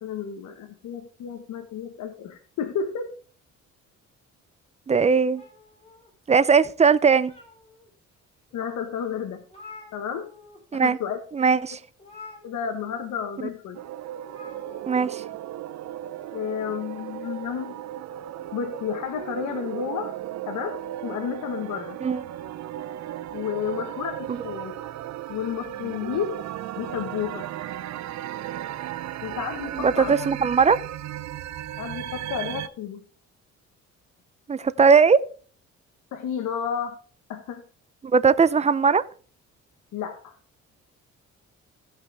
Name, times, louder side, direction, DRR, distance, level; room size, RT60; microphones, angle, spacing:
voice 1, 0.0-3.1 8.5-9.4 9.9-10.3 10.7-11.2 12.4-13.8 16.3-17.7 18.5-20.1 20.5-22.0 23.3-24.7 25.3-26.4 26.8-27.5 29.2-30.3 31.8-33.0 36.1-36.9 37.3-37.6 39.9-40.4, left 8 dB, 80° left, 1.3 m, -31 dB
voice 2, 4.9-5.4 6.3-7.3 10.7-11.0 11.3-11.8 14.9-15.2 22.0-22.2 29.8-30.8 34.5-35.2 38.1-39.0, right 5 dB, 20° right, 0.6 m, -19 dB
sound 1, 5.3-6.5 7.0-7.9 8.5-8.6 9.0-9.1 9.2-10.6 10.9-11.1 12.0-13.0 14.2-15.1, left 4 dB, 20° left, 4.0 m, -47 dB
sound 2, 13.7-32.7, right 12 dB, 65° right, 0.6 m, -35 dB
16.5 x 5.7 x 3.4 m
cardioid pair, 90°, 30 cm